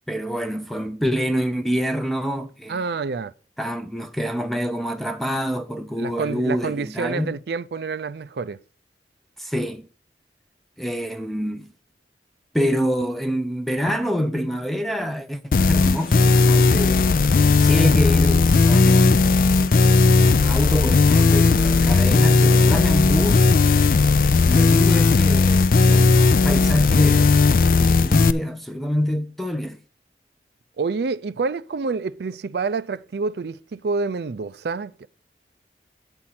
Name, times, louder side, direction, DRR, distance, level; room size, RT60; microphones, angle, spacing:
voice 1, 0.1-2.8 3.6-7.3 9.4-9.9 10.8-11.7 12.5-17.1 17.6-19.3 19.5-19.9 20.4-23.4 24.4-27.3 27.6-29.8, equal, ahead, 0.5 m, -26 dB
voice 2, 2.7-3.3 6.0-8.6 30.8-35.1, right 4 dB, 65° right, 0.4 m, -28 dB
sound 1, 15.5-28.3, left 4 dB, 50° left, 0.4 m, -16 dB
9.7 x 4.3 x 7.4 m
head